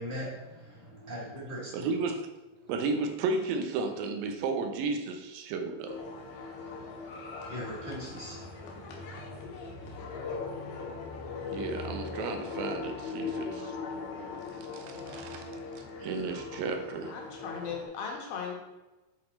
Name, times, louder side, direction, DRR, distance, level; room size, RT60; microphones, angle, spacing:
voice 1, 0.0-1.9 2.6-2.7 6.7-6.9 7.4-8.5, equal, 20° right, -5 dB, 1.8 m, -40 dB
voice 2, 1.7-2.2 2.7-6.0 11.5-13.7 14.7-15.5 15.8-17.1, right 4 dB, 75° right, 6 dB, 2.5 m, -33 dB
sound 1, 5.9-17.9, left 4 dB, 85° left, 3.1 m, -39 dB
voice 3, 17.0-18.5, left 6 dB, 65° left, 0 dB, 2.7 m, -37 dB
10.0 x 4.0 x 4.3 m, 1.1 s
omnidirectional pair, 4.3 m